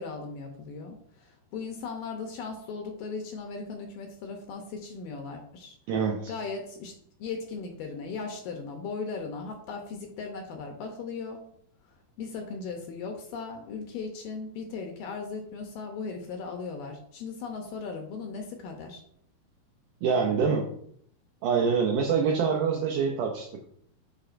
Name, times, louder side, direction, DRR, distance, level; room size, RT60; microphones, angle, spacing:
voice 1, 0.0-5.8 6.3-6.9 7.2-11.4 12.2-19.0, left 4 dB, 75° left, 3 dB, 2.2 m, -37 dB
voice 2, 5.9-6.3 20.0-20.7 21.4-23.5, right 6 dB, 85° right, 1 dB, 1.8 m, -25 dB
7.7 x 5.1 x 2.5 m, 0.66 s
omnidirectional pair, 4.4 m